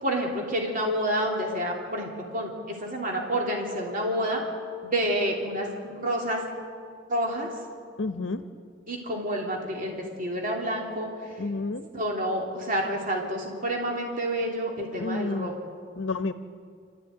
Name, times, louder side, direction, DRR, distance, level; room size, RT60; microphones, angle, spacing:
voice 1, 0.0-4.4 4.8-6.4 7.1-7.5 8.9-11.1 11.9-15.5, equal, 45° right, 0 dB, 3.1 m, -29 dB
voice 2, 8.0-8.4 11.4-11.8 15.0-15.5 16.0-16.3, left 3 dB, 85° left, 8 dB, 0.9 m, -30 dB
28.0 x 13.5 x 9.4 m, 2.3 s
head